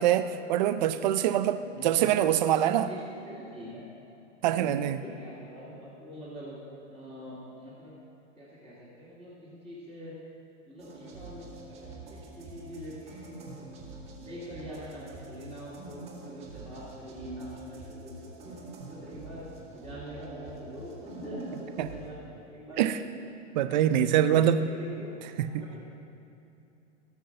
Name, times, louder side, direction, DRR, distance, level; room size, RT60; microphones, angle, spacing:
voice 1, 0.0-2.9 4.4-5.0 21.8-21.9 22.8-23.0 23.5-24.6 25.4-25.6, right 11 dB, 40° right, 11 dB, 0.5 m, -24 dB
voice 2, 1.7-2.1 2.5-3.8 4.4-6.5 6.9-7.9 8.4-10.1 10.7-13.6 14.1-18.6 18.9-23.0 23.4-23.5 24.0-25.1 25.4-25.8, equal, 5° left, -11 dB, 2.1 m, -44 dB
sound 1, 10.8-22.1, right 2 dB, 15° right, 1.7 m, -46 dB
17.0 x 6.1 x 6.5 m, 2.7 s
hypercardioid pair, 150°, 37 cm